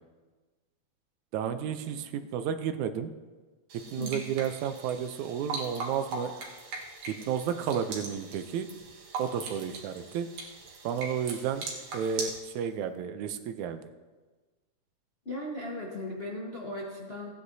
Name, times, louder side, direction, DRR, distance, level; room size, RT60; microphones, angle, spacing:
voice 1, 1.3-3.1 3.9-6.3 7.1-8.7 9.2-10.3 10.8-11.6 11.9-13.9, right 8 dB, 80° right, 9 dB, 2.0 m, -32 dB
sound 1, 3.7-12.4, right 3 dB, 65° right, 2.4 m, -40 dB
voice 2, 4.0-4.3 15.2-17.3, left 1 dB, 75° left, -4 dB, 0.5 m, -37 dB
15.5 x 9.7 x 2.7 m, 1.3 s
omnidirectional pair, 3.4 m